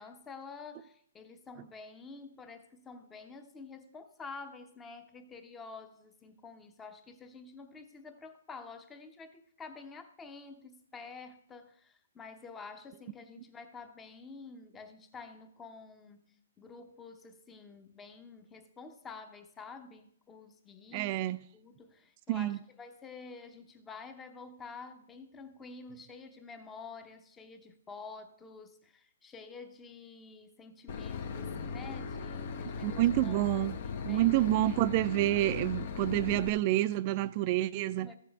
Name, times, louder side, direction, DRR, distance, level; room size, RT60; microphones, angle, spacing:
voice 1, 0.0-21.1 21.5-33.4 34.0-34.3 38.0-38.1, left 4 dB, 15° left, 0.9 m, -49 dB
voice 2, 20.9-21.4 22.3-22.6 32.8-33.8 34.0-38.1, right 15 dB, 35° right, 0.4 m, -28 dB
Boat Water vehicle / Engine, 30.9-36.5, left 5 dB, 50° left, 0.9 m, -38 dB
14.5 x 6.8 x 3.5 m
hypercardioid pair, 140°, 0 cm